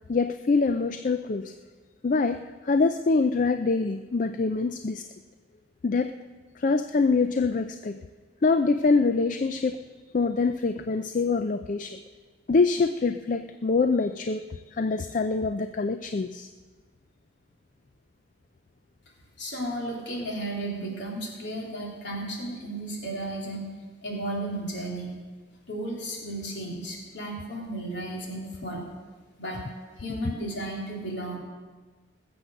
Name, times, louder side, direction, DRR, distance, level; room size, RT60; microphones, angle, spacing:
voice 1, 0.1-1.5 2.0-2.4 2.7-5.0 5.8-6.1 6.6-8.0 8.4-9.8 10.1-12.0 12.5-16.5, left 4 dB, 40° left, 9 dB, 0.4 m, -25 dB
voice 2, 19.4-23.7 24.0-25.1 25.7-28.9 29.4-29.6 30.0-31.4, right 1 dB, 60° left, -2 dB, 3.5 m, -34 dB
20.5 x 7.9 x 6.5 m, 1.4 s
head